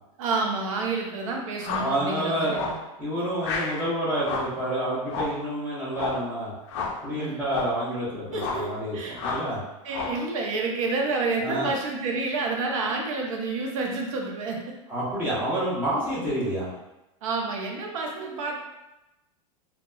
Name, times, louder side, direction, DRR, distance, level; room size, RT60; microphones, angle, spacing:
voice 1, 0.2-2.8 7.2-7.4 8.3-9.2 9.8-14.6 17.2-18.6, right 3 dB, 70° right, 0 dB, 0.6 m, -29 dB
sound 1, 1.6-2.0 2.5-2.9 3.4-3.8 4.2-4.6 5.1-5.4 5.9-6.3 6.7-7.0 7.4-7.8 8.3-8.7 9.2-9.5 9.9-10.3, left 4 dB, 55° left, 0.4 m, -31 dB
voice 2, 1.8-2.6 3.0-6.5 7.0-9.6 11.4-11.7 14.9-16.7, right 1 dB, 10° right, -9 dB, 0.7 m, -28 dB
2.7 x 2.2 x 2.3 m, 0.95 s
supercardioid pair, 160°, 18 cm